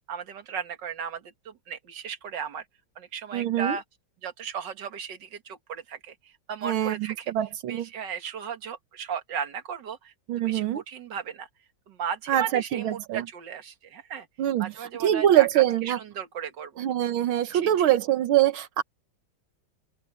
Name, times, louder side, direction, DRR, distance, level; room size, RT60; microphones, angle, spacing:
voice 1, 0.1-2.7 3.0-3.8 4.2-7.3 7.7-11.5 11.9-14.3 14.6-16.8 17.5-17.9, right 7 dB, 60° right, 2.2 m, -36 dB
voice 2, 3.3-3.8 6.6-7.0 7.3-7.9 10.3-10.8 12.3-13.2 14.4-14.7 15.0-16.0 16.8-18.8, right 12 dB, 85° right, 1.8 m, -23 dB
open air
omnidirectional pair, 2.2 m